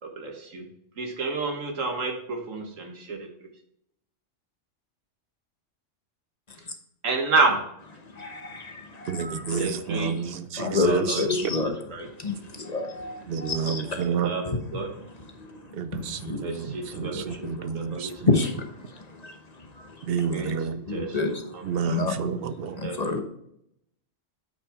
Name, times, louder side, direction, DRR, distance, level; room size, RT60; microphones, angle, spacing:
voice 1, 0.0-0.6 1.0-3.3 7.0-7.6 9.6-10.1 10.8-11.2 11.6-12.1 14.1-14.9 16.3-18.2 20.1-20.6 20.9-21.6 22.6-23.0, right 3 dB, 90° right, 1.8 m, -30 dB
voice 2, 8.0-9.6 10.6-11.7 12.0-14.0 15.3-16.5 16.9-20.1 20.9-21.4 21.9-22.2 22.8-23.2, left 3 dB, 35° left, 1.0 m, -30 dB
voice 3, 9.1-11.5 13.3-14.3 15.7-18.4 20.0-20.8 21.6-22.8, right 6 dB, 55° right, 0.8 m, -30 dB
8.5 x 5.9 x 3.6 m
omnidirectional pair, 1.3 m